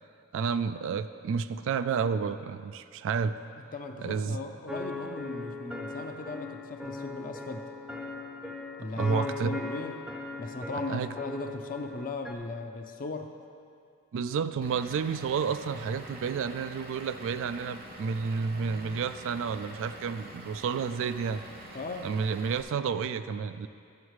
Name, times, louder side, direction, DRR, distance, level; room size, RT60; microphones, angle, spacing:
voice 1, 0.3-3.4 4.0-4.4 8.9-9.6 10.9-11.1 14.1-21.4 22.0-23.7, right 6 dB, 60° right, 12 dB, 0.3 m, -30 dB
voice 2, 3.7-7.7 8.8-10.0 10.4-13.3 21.7-22.1, left 3 dB, 40° left, 5 dB, 0.6 m, -38 dB
sound 1, 4.7-12.3, left 3 dB, 5° right, 0.6 m, -39 dB
Vehicle / Engine, 14.6-22.6, right 1 dB, 45° right, 0.8 m, -46 dB
13.0 x 7.2 x 3.1 m, 2.4 s
head